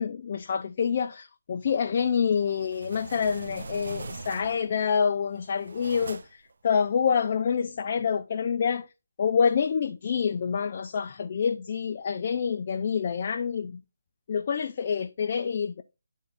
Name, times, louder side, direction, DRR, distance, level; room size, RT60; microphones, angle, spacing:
voice 1, 0.0-8.9 9.2-13.8 14.3-15.8, left 6 dB, 40° left, 0.4 m, -27 dB
sound 1, 2.3-4.8 5.3-6.5, right 3 dB, 60° right, 0.6 m, -41 dB
10.0 x 3.6 x 4.0 m
figure-of-eight pair, 155°, 0 cm